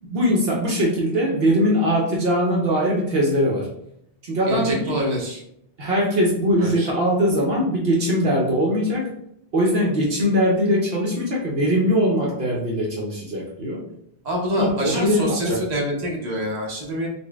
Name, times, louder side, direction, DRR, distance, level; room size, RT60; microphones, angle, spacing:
voice 1, 0.0-3.7 4.2-4.9 5.8-9.1 9.5-13.8 14.5-15.6, equal, 65° right, -3 dB, 1.0 m, -21 dB
voice 2, 4.5-5.4 6.6-6.9 14.2-17.1, equal, 40° right, -2 dB, 1.0 m, -26 dB
4.2 x 2.1 x 3.4 m, 0.74 s
omnidirectional pair, 1.1 m